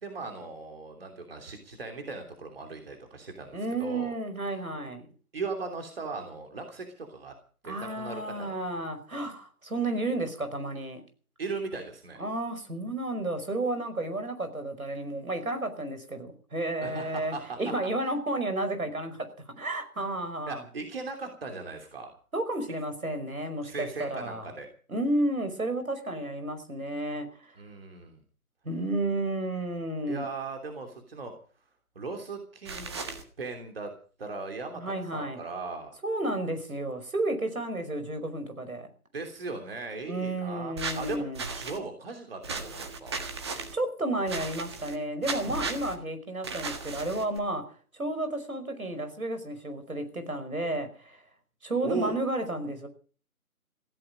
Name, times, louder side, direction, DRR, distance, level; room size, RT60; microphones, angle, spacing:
voice 1, 0.0-4.1 5.3-7.3 7.6-8.6 11.4-12.2 16.8-17.6 20.0-20.1 20.5-22.1 23.6-24.7 27.6-28.2 30.1-31.3 31.9-32.9 33.4-33.9 34.2-36.0 39.1-41.2 41.5-43.2 51.8-52.2, right 3 dB, 40° right, 4 dB, 3.1 m, -38 dB
voice 2, 3.5-5.1 7.6-11.0 12.2-19.2 19.6-20.6 22.3-24.5 24.9-27.5 28.6-30.3 34.8-35.4 36.0-38.9 40.1-41.4 43.7-47.6 47.9-51.2 51.6-52.9, right 2 dB, 70° right, 8 dB, 5.4 m, -32 dB
sound 1, 32.6-33.2 40.8-41.8 42.4-43.7 44.3-45.0 45.2-45.9 46.4-47.4, right 4 dB, 20° right, 1.5 m, -36 dB
16.5 x 16.0 x 5.3 m, 0.41 s
figure-of-eight pair, 155°, 44 cm